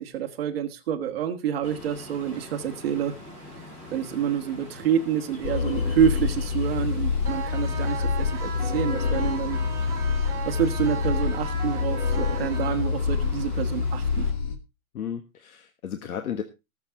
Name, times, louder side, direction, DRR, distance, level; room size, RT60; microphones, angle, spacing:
voice 1, 0.0-3.2 3.9-9.6 10.5-14.3, right 9 dB, 40° right, 1.7 m, -28 dB
Ocean, 1.6-14.3, left 1 dB, 15° left, 4.7 m, -44 dB
sound 1, 5.4-14.6, left 5 dB, 35° left, 1.4 m, -26 dB
sound 2, 7.2-13.2, right 7 dB, 5° right, 2.9 m, -37 dB
voice 2, 14.9-16.4, left 8 dB, 75° left, 1.6 m, -33 dB
19.0 x 7.3 x 3.8 m
hypercardioid pair, 180°, 44 cm